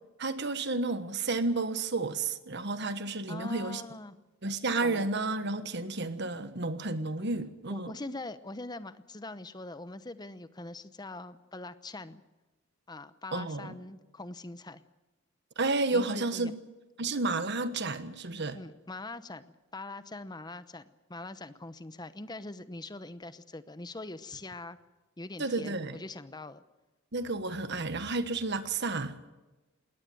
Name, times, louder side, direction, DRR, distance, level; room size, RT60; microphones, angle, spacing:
voice 1, 0.2-3.8 4.4-7.9 13.3-13.7 15.6-16.5 17.0-18.6 25.4-26.0 27.1-29.2, right 3 dB, 55° right, 1.4 m, -31 dB
voice 2, 3.3-4.2 4.8-5.1 7.2-7.3 7.7-12.2 12.9-14.8 15.9-16.5 18.5-24.8 25.2-26.6, left 2 dB, 20° left, 0.9 m, -43 dB
21.5 x 18.0 x 7.8 m
head